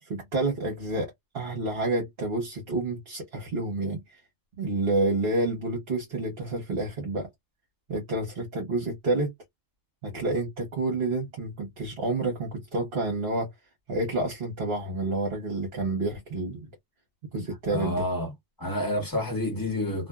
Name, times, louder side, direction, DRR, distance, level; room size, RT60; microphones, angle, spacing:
voice 1, 0.0-4.2 4.6-7.3 7.9-9.3 10.0-13.5 13.9-16.7 17.3-18.0, right 2 dB, 55° right, 1.3 m, -29 dB
voice 2, 17.7-18.3 18.6-20.1, left 1 dB, 15° left, 1.4 m, -29 dB
2.6 x 2.5 x 2.3 m
omnidirectional pair, 1.2 m